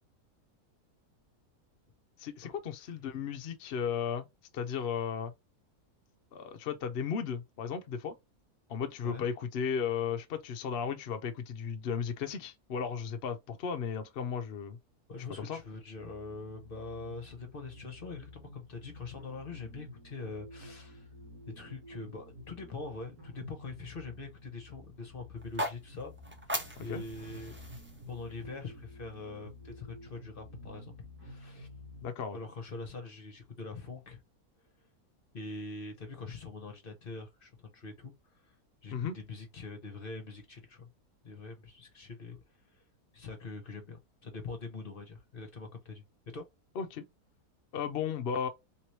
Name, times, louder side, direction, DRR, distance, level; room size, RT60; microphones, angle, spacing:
voice 1, 2.2-4.3 4.5-5.3 6.3-8.2 8.7-14.8 15.4-15.6 26.8-27.0 32.0-32.4 38.9-39.2 46.8-47.1 47.7-48.5, left 7 dB, 65° left, 0.6 m, -35 dB
voice 2, 15.1-21.1 21.5-26.1 26.8-27.6 28.1-30.9 31.2-31.7 32.3-34.2 35.3-38.5 38.8-40.9 41.2-42.4 42.7-42.8 43.1-46.0 46.3-46.5, left 3 dB, 40° left, 1.0 m, -43 dB
sound 1, 16.0-32.1, left 1 dB, 80° right, 1.6 m, -51 dB
sound 2, 25.4-29.5, equal, 15° right, 0.4 m, -40 dB
3.4 x 3.0 x 2.9 m
omnidirectional pair, 1.6 m